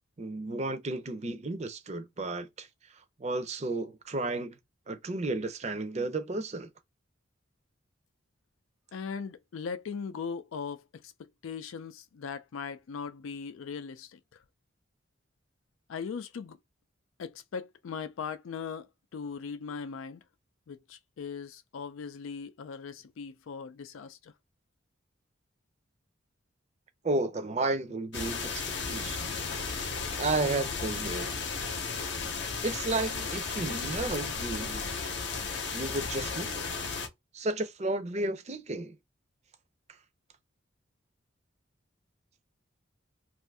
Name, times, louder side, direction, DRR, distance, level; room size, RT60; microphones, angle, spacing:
voice 1, 0.2-2.7 3.2-4.5 4.9-6.7 27.0-29.3 30.1-31.3 32.6-34.8 35.7-36.7 37.3-38.9, right 2 dB, 35° right, 0.5 m, -33 dB
voice 2, 8.9-11.1 11.4-14.2 15.9-16.6 17.2-18.9 19.1-20.2 20.7-24.3, left 6 dB, 90° left, 0.4 m, -39 dB
Rain Thunder Short, 28.1-37.1, left 5 dB, 60° left, 0.7 m, -34 dB
2.6 x 2.4 x 3.3 m
head